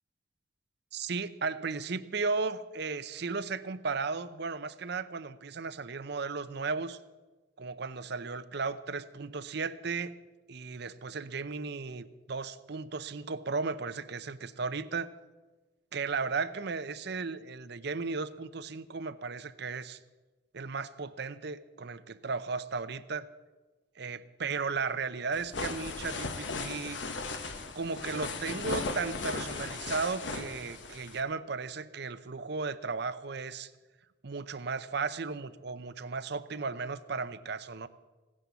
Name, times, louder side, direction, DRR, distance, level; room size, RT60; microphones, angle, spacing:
voice 1, 0.9-7.0 7.6-10.1 10.5-15.1 15.9-20.0 20.5-23.3 24.0-27.0 27.7-33.7 34.2-37.9, right 4 dB, 65° right, 13 dB, 0.7 m, -35 dB
sound 1, 25.3-31.2, left 3 dB, 80° left, 1.3 m, -37 dB
16.5 x 9.8 x 7.0 m, 1.2 s
head